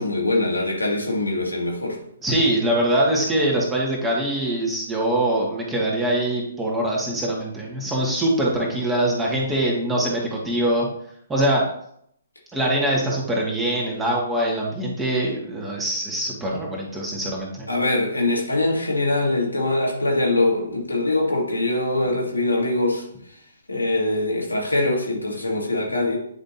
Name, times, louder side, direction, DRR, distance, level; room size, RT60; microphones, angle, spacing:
voice 1, 0.0-2.0 17.7-23.0 23.7-26.2, left 2 dB, 80° left, 2.0 m, -23 dB
voice 2, 2.2-10.9 11.3-11.6 12.5-17.7, right 1 dB, 10° right, 1.9 m, -23 dB
9.9 x 5.2 x 2.8 m
figure-of-eight pair, 125°, 0 cm